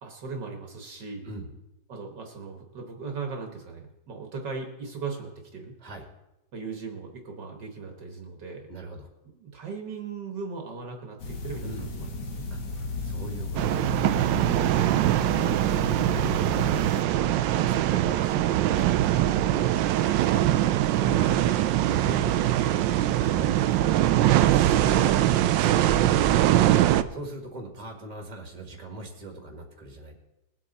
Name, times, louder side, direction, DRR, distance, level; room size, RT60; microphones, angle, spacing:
voice 1, 0.0-1.3 1.9-5.7 6.5-8.7 9.3-12.1 12.3-12.4 17.1-17.4 26.1-26.9, right 4 dB, 60° right, 3 dB, 1.8 m, -38 dB
voice 2, 8.7-9.1 11.6-11.9 12.5-12.6 13.0-14.2 15.7-16.6 17.4-19.7 20.2-20.5 21.0-21.4 21.7-23.9 24.5-26.0 27.1-30.2, right 1 dB, 20° right, 3 dB, 1.7 m, -41 dB
sound 1, 11.2-17.0, left 2 dB, 55° left, 1.9 m, -34 dB
sound 2, 13.5-27.0, right 13 dB, 75° right, 1.1 m, -22 dB
20.0 x 7.8 x 4.1 m, 0.92 s
omnidirectional pair, 2.3 m